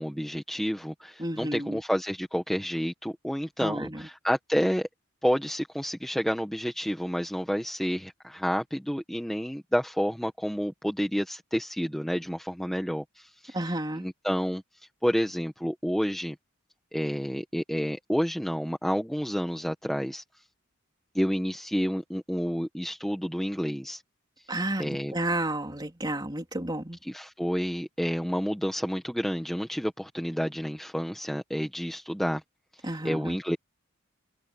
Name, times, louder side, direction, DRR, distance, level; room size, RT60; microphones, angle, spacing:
voice 1, 0.0-4.9 5.2-13.6 14.0-14.6 15.0-16.4 16.9-20.2 21.1-24.0 24.8-25.1 27.1-32.4 32.7-33.6, equal, ahead, 1.5 m, -29 dB
voice 2, 1.2-1.8 3.6-4.1 13.5-14.0 24.5-27.0 32.8-33.4, right 1 dB, 20° right, 3.7 m, -31 dB
head